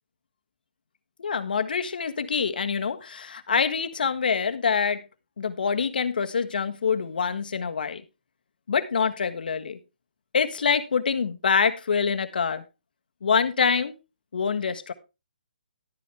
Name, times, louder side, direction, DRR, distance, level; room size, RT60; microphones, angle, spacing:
voice 1, 1.2-5.0 5.4-8.0 8.7-9.8 10.3-12.6 13.2-13.9 14.3-14.9, left 6 dB, 70° left, 9 dB, 1.5 m, -25 dB
12.5 x 9.5 x 3.5 m, 0.27 s
hypercardioid pair, 155°, 5 cm